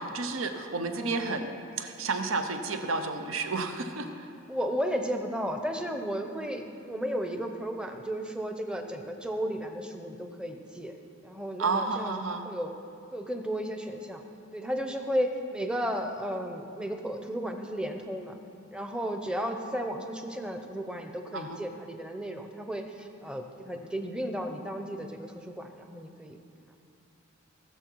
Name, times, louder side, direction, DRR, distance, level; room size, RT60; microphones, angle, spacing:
voice 1, 0.0-4.3 11.6-12.5 21.3-21.6, right 3 dB, 75° right, 7 dB, 0.8 m, -31 dB
voice 2, 0.9-1.4 4.5-10.9 11.2-12.7 13.1-14.2 14.5-18.4 18.7-26.4, equal, 5° right, 5 dB, 0.7 m, -34 dB
18.0 x 7.0 x 4.6 m, 2.6 s
head